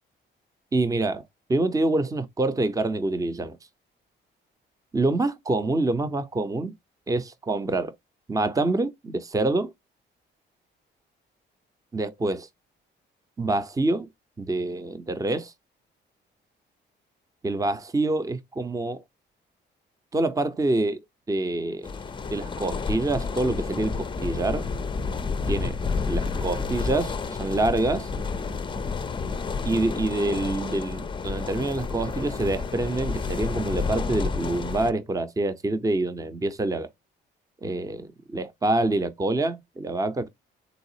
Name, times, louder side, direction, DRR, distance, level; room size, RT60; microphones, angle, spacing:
voice 1, 0.7-1.2 1.5-3.6 4.9-6.7 7.1-7.9 8.3-9.7 11.9-12.5 13.4-14.1 14.4-15.5 17.4-19.0 20.1-21.0 21.3-21.9 22.3-24.6 25.5-25.8 26.1-28.1 29.6-36.9 37.6-40.3, right 2 dB, 15° right, 0.6 m, -26 dB
sound 1, 21.8-34.9, left 4 dB, 25° left, 0.5 m, -30 dB
4.0 x 2.3 x 2.7 m
cardioid pair, 90°, 20 cm